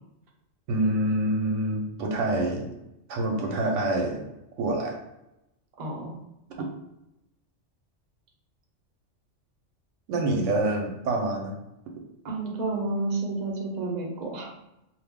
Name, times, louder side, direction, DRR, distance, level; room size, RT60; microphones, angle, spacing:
voice 1, 0.7-2.7 3.1-4.2 4.6-5.0 6.6-6.7 10.1-11.5, right 1 dB, 85° right, 1 dB, 1.0 m, -26 dB
voice 2, 5.8-6.2 12.2-14.5, right 2 dB, 45° right, -2 dB, 0.7 m, -30 dB
2.3 x 2.1 x 3.5 m, 0.89 s
omnidirectional pair, 1.3 m